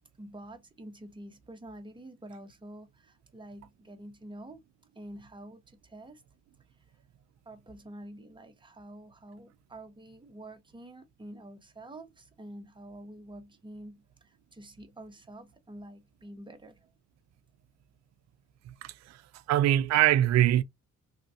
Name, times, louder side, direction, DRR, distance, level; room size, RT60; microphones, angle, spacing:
voice 1, 0.2-4.6 4.9-6.2 7.4-16.9, right 1 dB, 15° right, 0.9 m, -47 dB
voice 2, 18.8-19.2 19.5-20.6, right 13 dB, 60° right, 0.4 m, -23 dB
3.2 x 2.4 x 2.7 m
cardioid pair, 90°, 30 cm